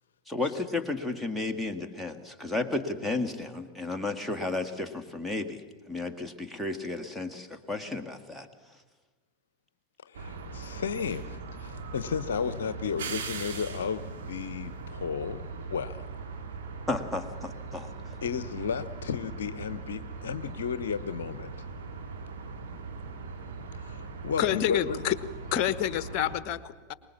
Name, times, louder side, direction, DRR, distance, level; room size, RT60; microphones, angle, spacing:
voice 1, 0.3-5.6 5.9-8.5 16.9-17.9, left 3 dB, ahead, 5 dB, 1.9 m, -33 dB
voice 2, 10.0-16.0 18.2-21.5 23.7-25.0, left 6 dB, 65° left, 14 dB, 0.8 m, -33 dB
sound 1, 10.1-26.4, right 4 dB, 60° right, 3.5 m, -40 dB
voice 3, 24.4-25.2 25.4-26.9, left 11 dB, 40° left, 15 dB, 1.1 m, -28 dB
24.5 x 20.5 x 7.3 m, 1.3 s
figure-of-eight pair, 90°, 0 cm